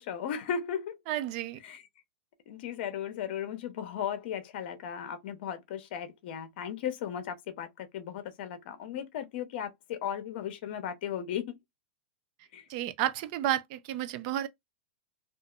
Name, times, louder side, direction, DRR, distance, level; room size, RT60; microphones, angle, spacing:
voice 1, 0.0-1.0 1.6-1.8 2.5-11.5 12.5-12.6, left 8 dB, 60° left, 0.7 m, -36 dB
voice 2, 1.1-1.6 12.7-14.5, right 12 dB, 45° right, 0.4 m, -31 dB
2.7 x 2.4 x 2.3 m
hypercardioid pair, 135°, 6 cm